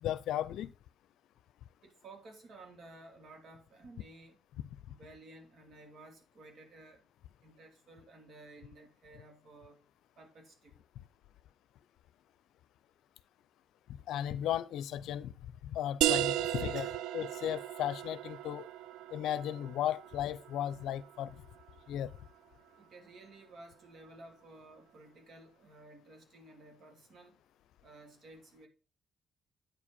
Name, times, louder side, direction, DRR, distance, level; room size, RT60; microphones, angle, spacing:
voice 1, 0.0-0.7 14.1-15.3 15.6-16.9 17.1-18.7 19.1-21.3 21.9-22.1, left 11 dB, 80° left, 0.5 m, -35 dB
voice 2, 1.8-4.4 4.9-7.0 7.4-9.8 10.2-10.7 16.7-17.0 22.8-27.4 27.8-28.7, right 2 dB, 65° right, 2.9 m, -54 dB
sound 1, 16.0-21.4, right 13 dB, 85° right, 0.4 m, -35 dB
9.1 x 4.9 x 5.3 m
supercardioid pair, 60°, 0 cm